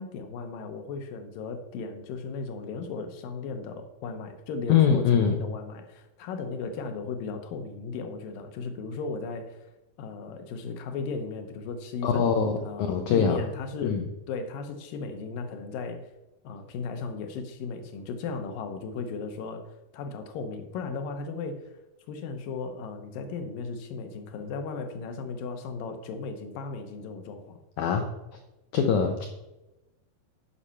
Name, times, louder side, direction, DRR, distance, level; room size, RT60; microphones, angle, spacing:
voice 1, 0.0-9.6 10.0-16.0 16.4-19.6 19.9-21.7 22.1-27.6, left 4 dB, 75° left, 7 dB, 2.2 m, -36 dB
voice 2, 4.7-5.4 12.0-13.4 13.8-14.0 27.8-28.1 28.7-29.3, left 7 dB, 90° left, 4 dB, 1.7 m, -23 dB
10.0 x 5.4 x 5.5 m, 0.98 s
omnidirectional pair, 4.5 m